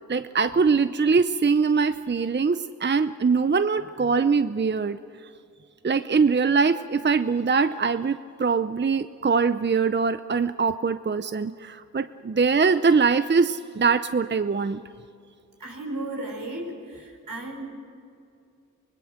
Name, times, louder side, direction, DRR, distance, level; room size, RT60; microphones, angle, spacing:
voice 1, 0.1-5.0 5.8-14.8, right 5 dB, 35° right, 11 dB, 0.6 m, -22 dB
voice 2, 15.6-17.6, right 2 dB, 75° right, 0 dB, 5.2 m, -34 dB
25.0 x 20.0 x 6.5 m, 2.5 s
cardioid pair, 45°, 34 cm